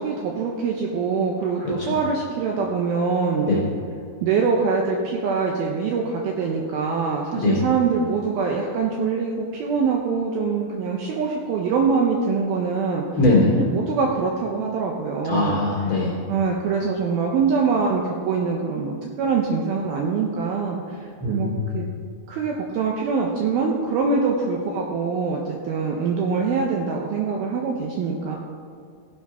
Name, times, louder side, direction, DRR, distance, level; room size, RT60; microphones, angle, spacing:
voice 1, 0.0-3.6 4.2-13.0 13.6-15.6 16.3-21.0 21.3-21.8 22.3-28.4, right 5 dB, 75° right, 0 dB, 2.3 m, -24 dB
voice 2, 1.6-1.9 3.4-3.6 7.3-7.6 13.2-13.5 15.2-16.2 21.2-21.6, left 2 dB, 35° left, -5 dB, 2.8 m, -21 dB
15.5 x 5.9 x 5.6 m, 2.3 s
omnidirectional pair, 5.1 m